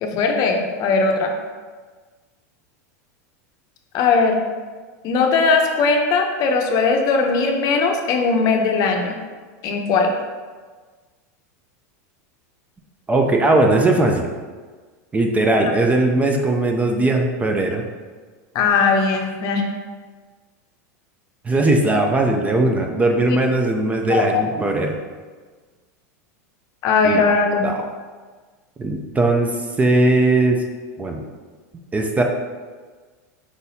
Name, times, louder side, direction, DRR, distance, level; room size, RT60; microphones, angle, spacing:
voice 1, 0.0-1.3 3.9-4.4 5.0-9.2 9.6-10.1 18.5-19.6 23.3-23.4 24.1-24.4 26.8-27.7, left 4 dB, 45° left, 3 dB, 0.6 m, -19 dB
voice 2, 13.1-14.3 15.1-17.8 21.4-25.0 27.0-27.3 27.6-27.8 28.8-30.6 31.0-31.2 31.9-32.2, right 2 dB, 15° right, 2 dB, 0.4 m, -19 dB
4.7 x 4.0 x 2.7 m, 1.4 s
hypercardioid pair, 115°, 9 cm